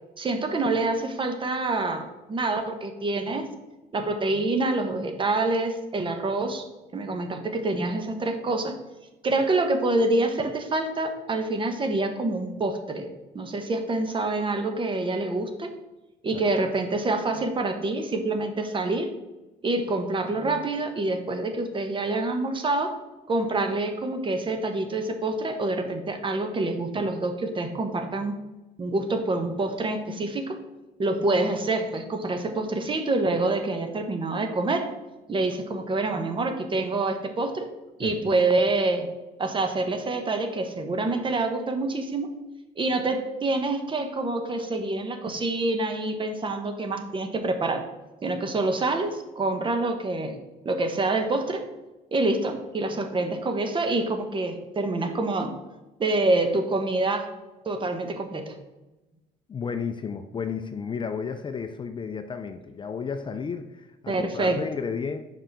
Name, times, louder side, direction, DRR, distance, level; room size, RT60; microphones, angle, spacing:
voice 1, 0.2-3.5 3.9-6.6 6.9-8.7 9.2-15.7 16.2-19.1 19.6-23.0 23.3-28.4 28.8-30.6 31.0-34.9 35.3-37.7 38.0-39.1 39.4-42.4 42.8-47.8 48.2-50.4 50.6-51.6 52.1-55.5 56.0-57.3 57.6-58.6 64.1-64.6, right 2 dB, 30° right, 6 dB, 1.1 m, -26 dB
voice 2, 59.5-65.2, left 6 dB, 30° left, 8 dB, 0.4 m, -32 dB
5.7 x 4.9 x 5.9 m, 1.1 s
cardioid pair, 110°, 17 cm